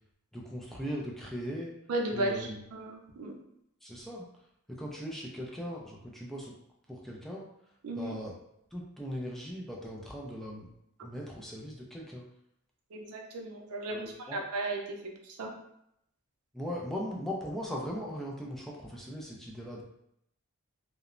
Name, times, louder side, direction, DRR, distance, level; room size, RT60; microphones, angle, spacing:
voice 1, 0.3-1.7 2.1-2.6 3.8-4.2 4.7-6.5 6.9-7.5 8.0-8.3 8.7-10.7 11.0-12.3 13.9-14.4 16.5-19.8, equal, ahead, -3 dB, 0.3 m, -39 dB
voice 2, 1.9-2.3 2.7-3.3 7.8-8.1 12.9-15.5, right 2 dB, 85° right, 1 dB, 0.5 m, -35 dB
2.9 x 2.0 x 2.4 m, 0.76 s
head